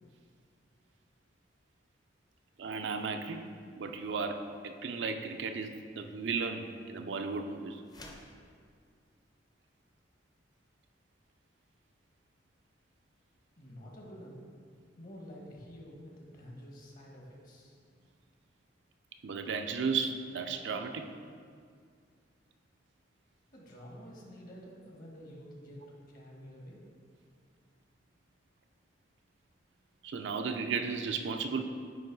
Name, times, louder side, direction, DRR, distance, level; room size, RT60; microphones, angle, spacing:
voice 1, 2.6-3.4 3.8-7.8 19.2-21.1 30.0-31.6, right 5 dB, 75° right, 7 dB, 0.4 m, -34 dB
sound 1, 7.8-8.4, left 1 dB, 20° left, 0.6 m, -49 dB
voice 2, 13.6-14.4 14.9-17.8 23.5-26.8, equal, 50° left, -2 dB, 1.3 m, -49 dB
8.8 x 3.0 x 4.6 m, 2.1 s
head